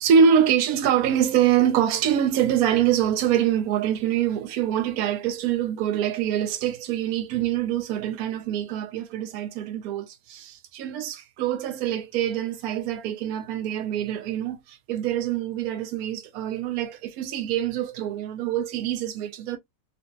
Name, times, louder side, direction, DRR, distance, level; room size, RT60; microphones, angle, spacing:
voice 1, 0.0-19.6, right 9 dB, 75° right, 1.1 m, -24 dB
3.9 x 2.2 x 2.6 m
omnidirectional pair, 1.6 m